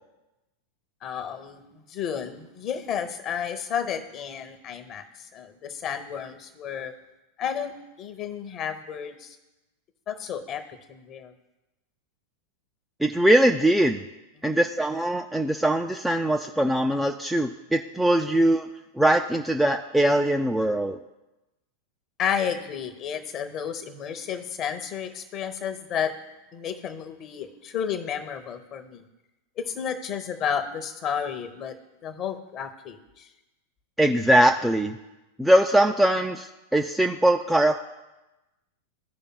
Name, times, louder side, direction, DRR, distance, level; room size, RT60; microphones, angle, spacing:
voice 1, 1.0-6.9 7.4-7.7 8.0-9.4 10.1-10.6 10.9-11.3 14.4-14.6 22.2-26.1 26.5-29.0 29.6-31.8 32.0-33.3, left 8 dB, 30° left, 8 dB, 0.8 m, -32 dB
voice 2, 13.0-14.0 14.4-18.7 19.0-21.0 34.0-35.0 35.4-37.7, right 1 dB, 5° right, 3 dB, 0.4 m, -21 dB
15.0 x 5.1 x 2.3 m, 1.0 s
figure-of-eight pair, 90°, 0 cm